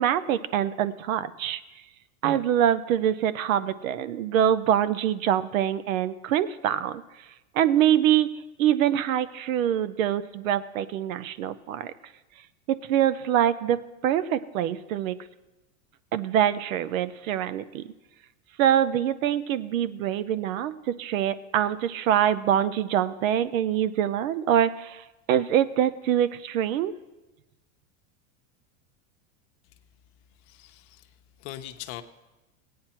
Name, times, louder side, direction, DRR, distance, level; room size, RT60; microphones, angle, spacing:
voice 1, 0.0-1.6 2.2-7.0 7.5-11.9 12.7-15.2 16.1-17.9 18.6-27.0, right 10 dB, 85° right, 15 dB, 0.7 m, -24 dB
voice 2, 30.5-31.1 31.4-32.0, left 13 dB, 60° left, 7 dB, 0.9 m, -40 dB
16.5 x 9.5 x 4.3 m, 1.1 s
supercardioid pair, 130°, 39 cm